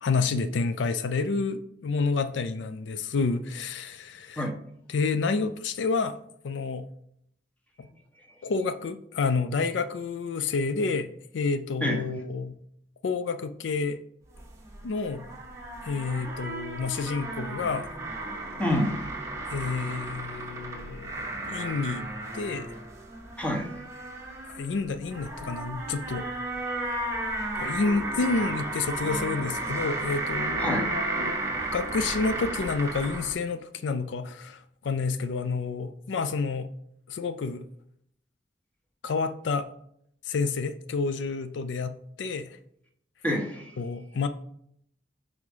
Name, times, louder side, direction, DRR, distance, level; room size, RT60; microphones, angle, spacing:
voice 1, 0.0-4.5 4.9-6.2 6.4-6.9 7.8-7.9 8.4-11.1 11.3-12.6 13.0-14.0 14.8-15.3 15.8-17.9 19.5-21.1 21.5-22.1 22.3-22.7 24.4-26.3 27.6-31.4 31.7-36.7 37.1-37.6 39.0-39.7 40.2-42.6 43.8-44.3, left 4 dB, 80° left, 0.4 m, -29 dB
sound 1, 14.3-33.3, right 2 dB, 15° right, 1.0 m, -34 dB
voice 2, 18.6-19.1 23.4-23.7 30.6-30.9 43.2-43.7, equal, 10° left, 1.1 m, -27 dB
4.8 x 4.7 x 5.4 m
head